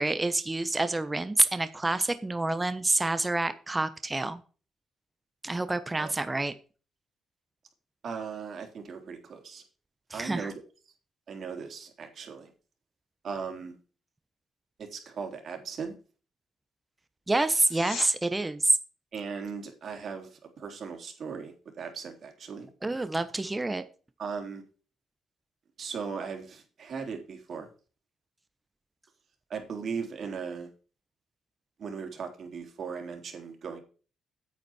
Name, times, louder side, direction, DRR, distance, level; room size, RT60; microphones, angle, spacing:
voice 1, 0.0-4.4 5.4-6.5 10.1-10.5 17.3-18.8 22.8-23.8, right 2 dB, 15° right, 12 dB, 1.1 m, -27 dB
voice 2, 8.0-9.6 10.1-10.5 11.3-12.5 13.2-13.7 14.8-15.9 19.1-22.7 24.2-24.6 25.8-27.7 29.5-30.7 31.8-33.8, right 5 dB, 55° right, 4 dB, 3.7 m, -38 dB
sound 1, 17.5-18.1 29.5-29.6, left 5 dB, 85° left, 4.1 m, -39 dB
9.4 x 8.2 x 4.5 m, 0.36 s
cardioid pair, 90°, 0 cm